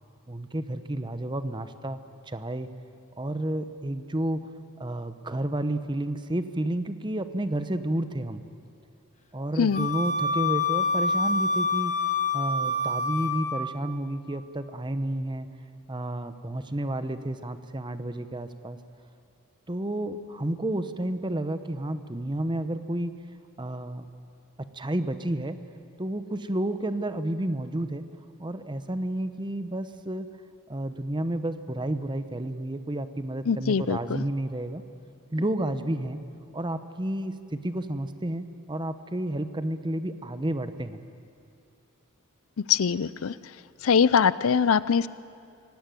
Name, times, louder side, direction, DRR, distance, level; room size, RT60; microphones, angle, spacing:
voice 1, 0.3-2.0 2.3-2.7 3.2-4.5 4.8-8.4 9.3-11.9 12.3-15.5 15.9-18.8 19.7-23.2 23.6-24.0 24.7-25.6 26.0-28.0 28.4-30.3 30.7-34.8 35.3-36.2 36.5-41.0, right 1 dB, 20° right, 10 dB, 0.9 m, -31 dB
Wind instrument woodwind instrument, 9.7-13.8, left 3 dB, 30° left, 1.5 m, -27 dB
voice 2, 33.5-34.0 42.7-43.3 43.8-45.1, left 6 dB, 65° left, 17 dB, 0.5 m, -22 dB
25.5 x 17.5 x 9.1 m, 2.5 s
head